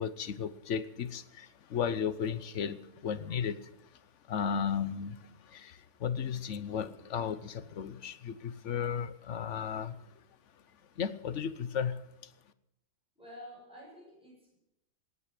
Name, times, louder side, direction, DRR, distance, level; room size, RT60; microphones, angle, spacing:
voice 1, 0.0-3.9 4.3-10.1 11.0-12.3, left 7 dB, 55° left, 14 dB, 1.1 m, -35 dB
voice 2, 13.2-14.6, equal, 5° right, -5 dB, 7.5 m, -50 dB
18.5 x 9.9 x 7.6 m, 0.88 s
omnidirectional pair, 1.6 m